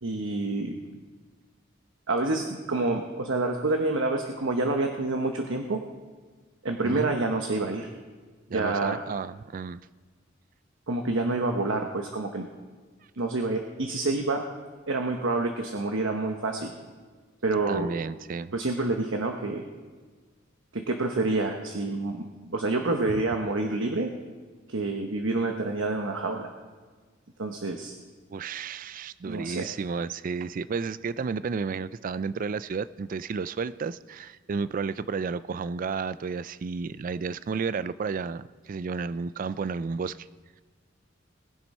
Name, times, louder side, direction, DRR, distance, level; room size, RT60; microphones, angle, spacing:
voice 1, 0.0-0.8 2.1-5.8 6.6-7.9 8.5-9.0 10.9-12.5 13.2-14.4 14.9-16.7 17.4-17.9 18.5-19.6 20.7-22.2 22.5-24.1 24.7-26.5 27.4-27.9 29.3-29.7, right 2 dB, 90° right, 3 dB, 1.1 m, -28 dB
voice 2, 6.8-7.1 8.5-9.8 17.7-18.5 28.3-40.3, right 5 dB, 45° right, 16 dB, 0.4 m, -32 dB
20.5 x 7.4 x 5.4 m, 1.5 s
head